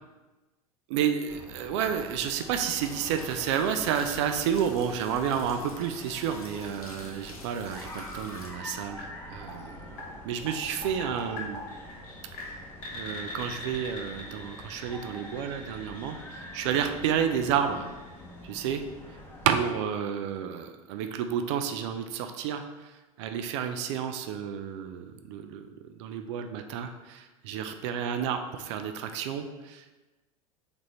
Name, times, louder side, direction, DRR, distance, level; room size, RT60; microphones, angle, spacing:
voice 1, 0.9-9.9 10.2-11.6 12.9-17.9 18.4-18.8 19.1-19.2 19.4-25.7 26.0-30.1, right 8 dB, 50° right, 7 dB, 0.4 m, -30 dB
sound 1, 1.3-19.7, left 1 dB, 10° left, 0.8 m, -46 dB
sound 2, 2.6-8.5, left 2 dB, 85° left, 0.6 m, -49 dB
sound 3, 9.0-18.8, left 1 dB, 50° left, 1.2 m, -43 dB
3.5 x 2.9 x 4.1 m, 1.2 s
figure-of-eight pair, 80°, 18 cm